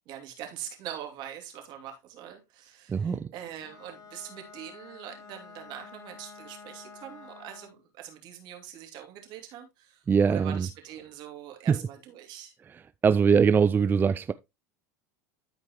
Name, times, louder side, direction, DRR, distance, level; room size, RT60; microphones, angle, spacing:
voice 1, 0.1-12.5, right 10 dB, 60° right, 2.7 m, -43 dB
voice 2, 2.9-3.3 10.1-10.7 11.7-11.8 13.0-14.3, right 6 dB, 25° right, 0.4 m, -22 dB
Bowed string instrument, 3.6-7.8, left 5 dB, 50° left, 2.0 m, -49 dB
13.0 x 4.6 x 3.0 m
hypercardioid pair, 90°, 9 cm